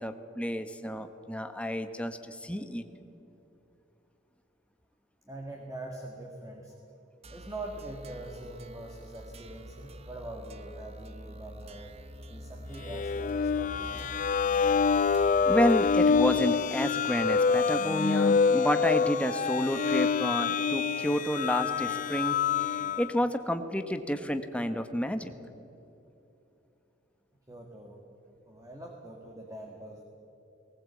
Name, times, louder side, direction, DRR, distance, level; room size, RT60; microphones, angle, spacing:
voice 1, 0.0-2.8 15.4-25.3, equal, 5° left, 8 dB, 1.0 m, -30 dB
voice 2, 5.2-6.8 7.3-11.9 12.3-14.1 27.5-28.0 28.5-30.0, right 1 dB, 15° right, 1 dB, 2.0 m, -43 dB
sound 1, 7.2-16.7, equal, 30° right, 0.9 m, -46 dB
sound 2, 12.8-23.1, left 5 dB, 40° left, 0.4 m, -26 dB
19.5 x 19.0 x 8.5 m, 2.9 s
head